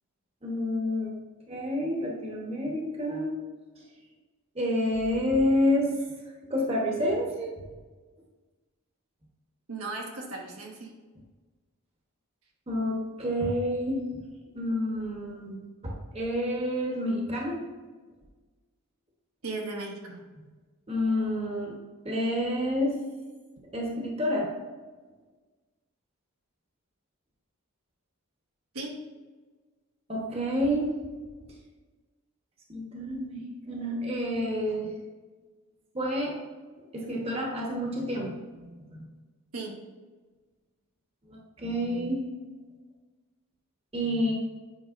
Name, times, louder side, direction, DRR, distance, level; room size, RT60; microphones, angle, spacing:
voice 1, 0.4-1.1 1.5-3.4 4.5-5.9 6.5-7.6 12.7-14.0 14.5-15.6 15.8-17.6 20.9-21.7 22.0-23.0 23.7-24.5 30.1-30.9 32.7-34.9 35.9-36.4 36.9-38.8 41.3-42.3 43.9-44.3, left 1 dB, 25° right, -1 dB, 1.0 m, -29 dB
voice 2, 9.7-10.9 19.4-20.2 28.7-29.0 39.5-39.8, right 3 dB, 80° right, 0 dB, 1.2 m, -36 dB
8.4 x 5.4 x 2.5 m, 1.3 s
head